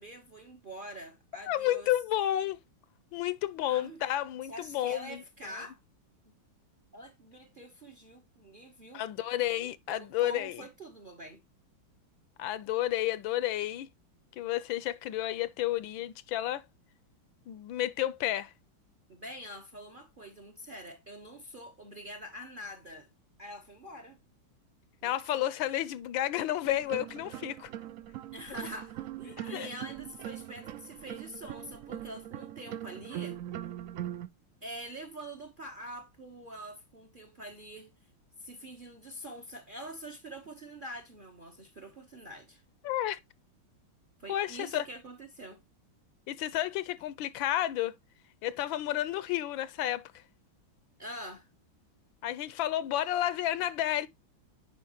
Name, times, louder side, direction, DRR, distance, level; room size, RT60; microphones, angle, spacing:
voice 1, 0.0-1.9 3.7-4.0 4.5-5.8 6.2-6.3 6.9-9.0 9.5-11.4 19.1-23.1 23.4-24.2 25.0-25.5 28.3-33.4 34.6-37.9 38.4-42.6 44.2-45.6 51.0-51.5, right 1 dB, 35° right, 0.8 m, -45 dB
voice 2, 1.5-2.6 3.1-5.2 8.9-10.6 12.4-13.9 14.4-16.6 17.5-18.5 25.0-27.7 29.3-29.7 42.8-43.2 44.3-44.8 46.3-47.9 48.4-50.2 52.2-54.1, left 13 dB, 80° left, 1.3 m, -31 dB
sound 1, 26.6-34.3, right 12 dB, 85° right, 0.7 m, -41 dB
9.7 x 4.8 x 2.9 m
omnidirectional pair, 2.2 m